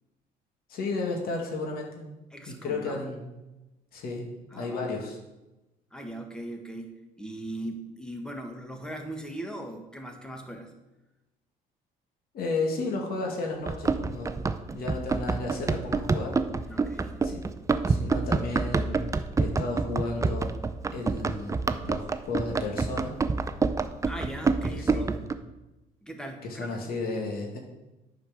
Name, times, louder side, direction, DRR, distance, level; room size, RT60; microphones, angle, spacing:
voice 1, 0.7-2.1 2.5-3.3 3.9-5.2 12.3-14.4 14.7-16.4 17.2-17.4 17.9-20.5 20.9-23.2 24.7-25.3 26.4-27.6, left 3 dB, 65° left, 1 dB, 2.0 m, -33 dB
voice 2, 2.3-3.0 4.5-5.1 5.9-6.9 7.2-10.7 16.7-17.2 24.0-25.1 26.0-26.7, right 1 dB, 5° left, 3 dB, 1.5 m, -39 dB
Run, 13.6-25.3, right 4 dB, 20° right, 0.5 m, -28 dB
9.2 x 4.9 x 6.5 m, 1.0 s
cardioid pair, 110°, 17 cm